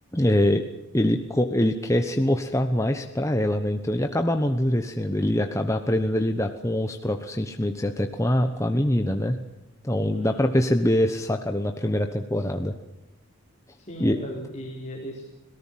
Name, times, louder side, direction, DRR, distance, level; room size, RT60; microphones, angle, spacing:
voice 1, 0.1-0.6 0.9-9.4 9.8-12.7 14.0-14.2, left 1 dB, 15° left, 6 dB, 1.1 m, -24 dB
voice 2, 10.1-10.5 13.8-15.3, equal, 30° left, 0 dB, 4.1 m, -37 dB
26.5 x 18.0 x 7.5 m, 0.98 s
head